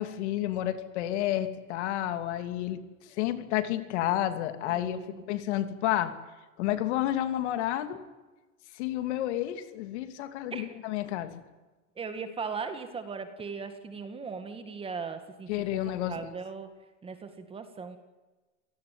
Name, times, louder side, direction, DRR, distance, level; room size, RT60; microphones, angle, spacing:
voice 1, 0.0-2.8 3.1-5.0 5.3-6.1 6.6-8.0 8.7-11.4 15.5-16.2, left 13 dB, 55° left, 9 dB, 2.9 m, -30 dB
voice 2, 4.7-5.5 10.5-10.8 12.0-16.7 17.0-18.0, right 5 dB, 15° right, 9 dB, 2.0 m, -39 dB
27.5 x 18.5 x 9.3 m, 1.2 s
supercardioid pair, 160°, 40 cm